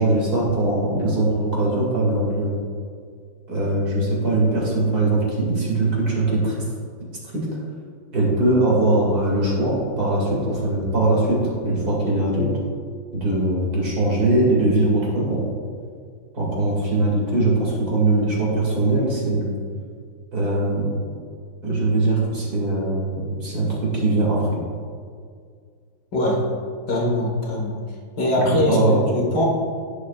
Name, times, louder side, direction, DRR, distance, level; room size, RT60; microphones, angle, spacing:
voice 1, 0.0-2.6 3.5-6.6 7.3-7.5 8.1-12.5 13.1-15.4 16.3-19.5 20.3-21.0 21.6-24.5 28.7-29.1, right 2 dB, 50° right, -4 dB, 2.7 m, -21 dB
voice 2, 26.9-27.8 28.2-29.5, left 1 dB, 55° left, -2 dB, 2.0 m, -21 dB
17.5 x 6.5 x 2.4 m, 2.1 s
omnidirectional pair, 2.2 m